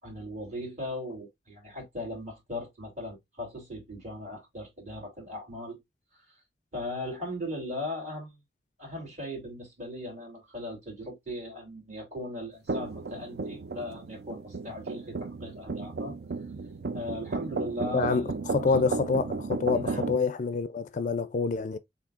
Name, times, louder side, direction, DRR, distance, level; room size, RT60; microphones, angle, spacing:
voice 1, 0.0-5.8 6.3-6.4 6.7-8.4 8.8-16.2 16.9-18.8 19.7-20.0, left 1 dB, 45° right, 3.0 m, -38 dB
sound 1, 12.7-20.2, right 3 dB, 65° right, 0.5 m, -34 dB
voice 2, 17.9-21.8, left 4 dB, 45° left, 0.4 m, -27 dB
7.1 x 2.7 x 2.4 m
head